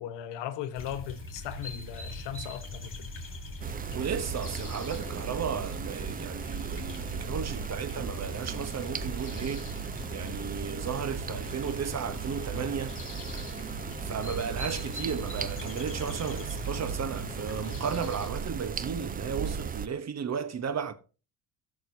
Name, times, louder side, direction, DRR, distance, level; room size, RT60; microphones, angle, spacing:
voice 1, 0.0-2.9, left 10 dB, 70° left, 1.2 m, -37 dB
sound 1, 0.7-18.3, left 2 dB, 25° left, 3.5 m, -41 dB
sound 2, 3.6-19.9, right 7 dB, 20° right, 0.4 m, -37 dB
voice 2, 3.9-9.7 10.1-13.0 14.0-20.9, right 7 dB, 35° right, 0.9 m, -34 dB
14.0 x 6.5 x 2.6 m
supercardioid pair, 80°, 45 cm